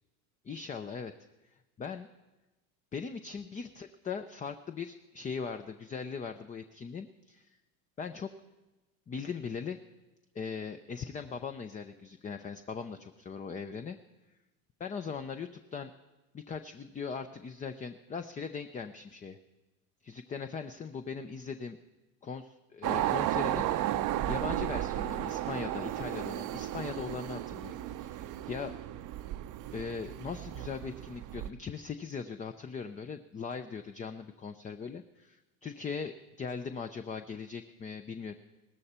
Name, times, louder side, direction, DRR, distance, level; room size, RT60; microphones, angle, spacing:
voice 1, 0.4-1.1 1.8-2.1 2.9-7.6 8.0-8.3 9.1-9.8 10.3-14.0 14.8-15.9 16.3-19.4 20.0-21.8 22.2-28.7 29.7-38.3, left 5 dB, 20° left, 8 dB, 0.5 m, -40 dB
sound 1, 22.8-31.5, right 13 dB, 45° right, 0.7 m, -34 dB
17.5 x 13.5 x 4.3 m, 1.1 s
supercardioid pair, 100°, 43 cm